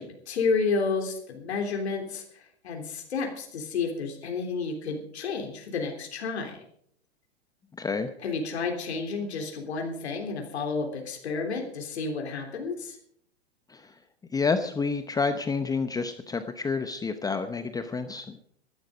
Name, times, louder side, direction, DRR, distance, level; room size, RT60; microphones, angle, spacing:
voice 1, 0.0-6.6 8.2-13.0, left 4 dB, 80° left, 3 dB, 3.5 m, -31 dB
voice 2, 7.8-8.1 13.7-14.0 14.3-18.4, left 4 dB, 10° left, 9 dB, 0.8 m, -29 dB
15.5 x 12.5 x 5.1 m, 0.66 s
hypercardioid pair, 120°, 32 cm